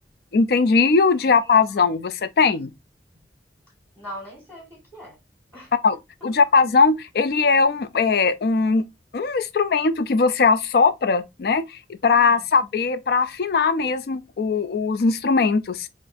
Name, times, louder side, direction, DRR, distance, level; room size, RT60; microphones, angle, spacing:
voice 1, 0.3-2.7 5.8-6.0 6.2-8.9 9.1-15.9, left 4 dB, 60° left, 0.4 m, -20 dB
voice 2, 1.4-1.8 4.0-5.2 5.5-5.7 12.1-12.4, equal, 10° left, 1.6 m, -41 dB
4.1 x 2.5 x 2.6 m
head